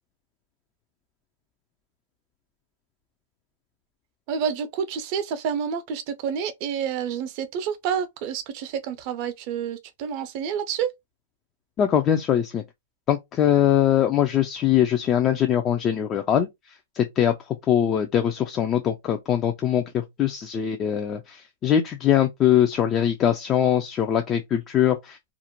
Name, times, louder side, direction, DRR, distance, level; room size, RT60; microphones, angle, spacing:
voice 1, 4.3-10.9, right 7 dB, 45° right, 0.5 m, -29 dB
voice 2, 11.8-12.6 13.1-16.5 17.0-17.3 17.7-25.3, left 10 dB, 25° left, 0.3 m, -22 dB
2.4 x 2.1 x 2.9 m
hypercardioid pair, 130°, 0 cm